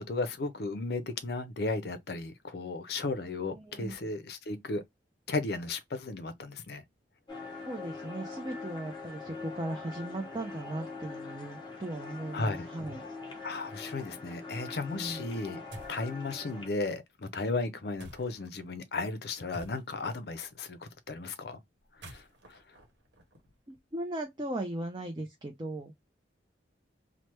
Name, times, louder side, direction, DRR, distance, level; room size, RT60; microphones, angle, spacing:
voice 1, 0.1-4.8 5.3-6.8 12.3-12.7 13.4-15.6 15.9-20.8 21.1-21.6 22.1-22.2 22.5-22.6, left 3 dB, 55° left, 0.5 m, -35 dB
voice 2, 3.4-3.9 7.6-13.0 14.9-15.2 23.7-25.9, right 1 dB, 25° right, 0.4 m, -38 dB
sound 1, 7.3-16.7, left 4 dB, 25° left, 0.9 m, -43 dB
sound 2, 15.7-16.1 18.0-18.5 19.5-20.2 21.8-23.8, equal, 70° right, 1.0 m, -49 dB
3.2 x 2.1 x 2.9 m
head